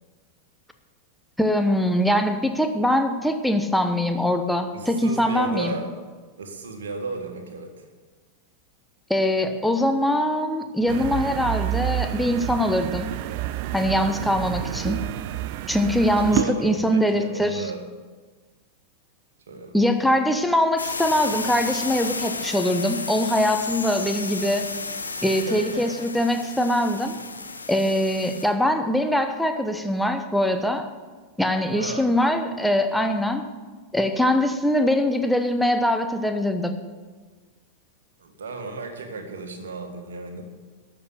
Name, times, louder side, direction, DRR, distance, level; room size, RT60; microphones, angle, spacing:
voice 1, 1.4-5.8 9.1-13.1 13.7-15.0 15.7-17.7 19.7-24.7 25.2-27.2 27.7-30.9 31.4-33.5 33.9-36.8, left 1 dB, ahead, 6 dB, 1.0 m, -22 dB
voice 2, 4.7-5.9 6.4-7.8 16.2-17.8 19.5-19.8 25.5-25.9 31.7-32.1 38.2-40.4, right 3 dB, 65° right, 5 dB, 1.7 m, -34 dB
sound 1, 10.9-16.4, right 14 dB, 45° right, 0.4 m, -29 dB
sound 2, 20.8-28.5, left 3 dB, 80° left, 1.0 m, -33 dB
12.5 x 6.8 x 8.2 m, 1.4 s
figure-of-eight pair, 90°, 0 cm